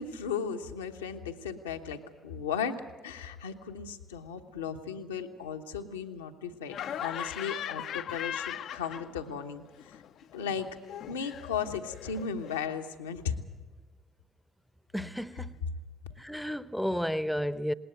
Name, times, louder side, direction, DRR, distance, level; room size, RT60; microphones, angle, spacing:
voice 1, 0.0-2.8 3.0-10.0 10.3-10.7 11.1-13.4, left 7 dB, 80° left, 1.1 m, -36 dB
Laughter, 6.7-9.5 9.7-12.6, left 10 dB, 60° left, 0.6 m, -39 dB
voice 2, 14.9-15.6 16.2-17.7, equal, ahead, 0.8 m, -32 dB
19.5 x 19.5 x 8.1 m
figure-of-eight pair, 50°, 0 cm